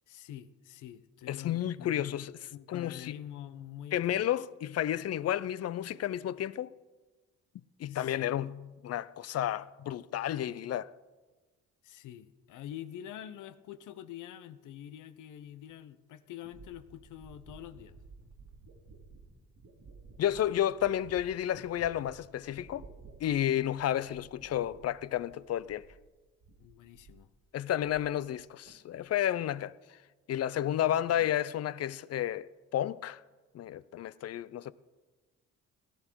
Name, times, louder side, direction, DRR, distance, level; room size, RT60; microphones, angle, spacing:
voice 1, 0.1-2.3 2.5-4.3 7.9-8.3 11.8-17.9 26.6-27.3 31.1-31.3, left 11 dB, 85° left, 0.8 m, -46 dB
voice 2, 1.3-2.3 2.7-3.1 3.9-6.7 7.8-10.9 20.2-22.9 23.2-25.9 27.5-29.7 30.3-33.2 33.5-34.7, left 11 dB, 55° left, 0.5 m, -31 dB
sound 1, 15.7-15.8 16.4-26.1 26.4-27.3 27.6-28.4 28.7-29.2, right 3 dB, 75° right, 2.2 m, -55 dB
17.0 x 11.0 x 4.6 m
cardioid pair, 90°, 30 cm